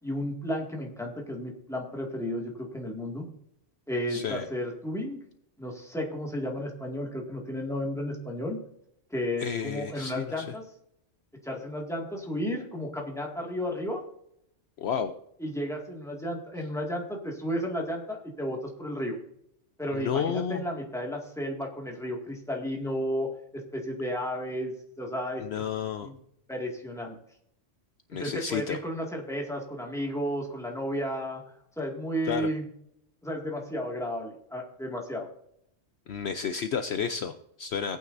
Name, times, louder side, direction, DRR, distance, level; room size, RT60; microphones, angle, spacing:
voice 1, 0.0-3.3 3.9-5.2 5.6-8.6 9.1-10.6 11.4-14.0 15.4-19.2 19.8-25.4 26.0-26.2 26.5-27.2 28.2-31.4 31.8-32.7 33.2-35.3, equal, ahead, -1 dB, 2.0 m, -33 dB
voice 2, 4.1-4.5 9.4-10.5 14.8-15.1 19.9-20.6 25.4-26.1 28.1-28.8 32.3-32.5 36.1-38.0, left 7 dB, 65° left, 8 dB, 0.8 m, -31 dB
17.5 x 9.1 x 2.6 m, 0.74 s
omnidirectional pair, 1.3 m